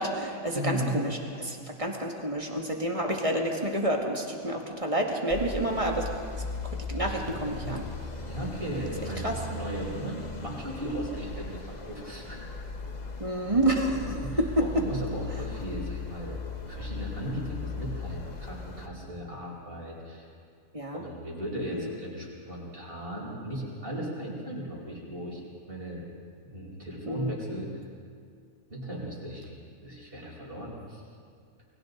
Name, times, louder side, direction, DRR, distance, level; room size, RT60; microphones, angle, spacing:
voice 1, 0.0-6.1 6.6-7.9 9.2-9.4 13.2-14.8 20.7-21.0 21.7-22.0 27.1-27.4, right 1 dB, 25° right, 1 dB, 2.1 m, -29 dB
voice 2, 0.5-0.9 7.0-7.7 8.2-12.4 13.9-16.4 16.7-20.3 20.9-25.4 25.7-26.1 26.4-27.8 28.7-29.5 29.8-31.0, right 1 dB, 40° right, -4 dB, 4.8 m, -36 dB
sound 1, 5.3-18.9, left 3 dB, 35° left, 1.2 m, -38 dB
30.0 x 21.5 x 4.1 m, 2.2 s
omnidirectional pair, 1.5 m